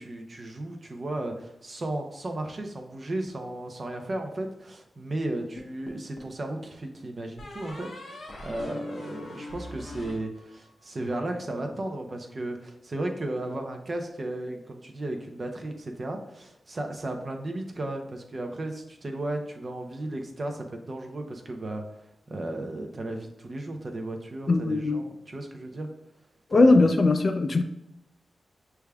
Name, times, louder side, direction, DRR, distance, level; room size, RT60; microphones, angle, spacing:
voice 1, 0.0-21.8 22.3-25.9 26.5-26.8, right 1 dB, 35° right, 0.6 m, -34 dB
sound 1, 5.6-6.4 7.4-10.9, left 2 dB, 55° left, 0.9 m, -42 dB
voice 2, 24.5-25.0 26.5-27.6, left 3 dB, 40° left, 0.3 m, -20 dB
6.0 x 3.4 x 2.3 m
wide cardioid pair, 155°, 0 cm